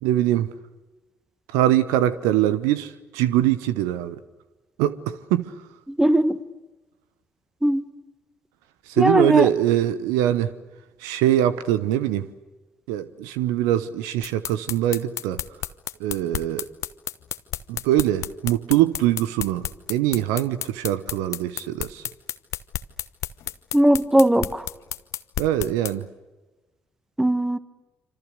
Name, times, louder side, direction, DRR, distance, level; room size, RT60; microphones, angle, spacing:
voice 1, 0.0-0.5 1.5-4.2 4.8-5.5 8.9-10.5 11.0-12.3 12.9-15.4 16.0-16.7 17.7-22.0 25.4-26.0, right 12 dB, 70° right, 14 dB, 1.0 m, -23 dB
voice 2, 5.9-6.4 7.6-7.8 9.0-9.4 23.7-24.7 27.2-27.6, right 1 dB, 10° right, 13 dB, 1.8 m, -19 dB
sound 1, 14.2-25.9, left 12 dB, 60° left, 1.1 m, -31 dB
27.0 x 26.5 x 6.7 m, 1.1 s
figure-of-eight pair, 45°, 6 cm